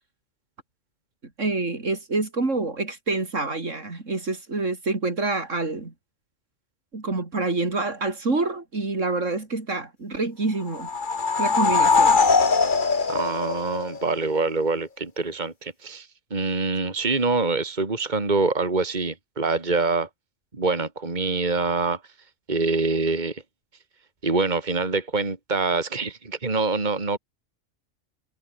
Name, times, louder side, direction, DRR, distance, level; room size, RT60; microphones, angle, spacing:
voice 1, 1.4-5.9 6.9-10.9 11.4-12.2, right 3 dB, 70° right, 3.8 m, -27 dB
sound 1, 10.7-14.2, left 4 dB, 40° left, 1.6 m, -21 dB
voice 2, 13.1-20.1 20.5-22.0 22.5-23.4 24.2-27.2, right 3 dB, 35° right, 2.6 m, -25 dB
omnidirectional pair, 1.3 m